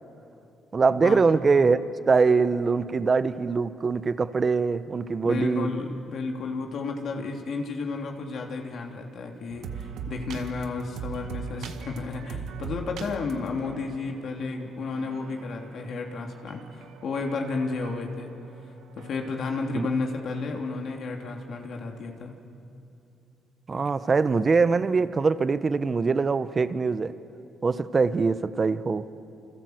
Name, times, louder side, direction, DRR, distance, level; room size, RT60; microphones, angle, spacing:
voice 1, 0.7-1.8 2.1-5.7 19.7-19.9 23.7-27.1 27.6-29.0, right 4 dB, 35° right, 13 dB, 1.0 m, -23 dB
voice 2, 5.2-18.3 18.9-22.3, left 3 dB, 60° left, 2 dB, 3.0 m, -32 dB
sound 1, 9.5-20.4, right 6 dB, 85° right, 1.7 m, -41 dB
28.5 x 26.0 x 8.0 m, 2.8 s
cardioid pair, 90°, 0 cm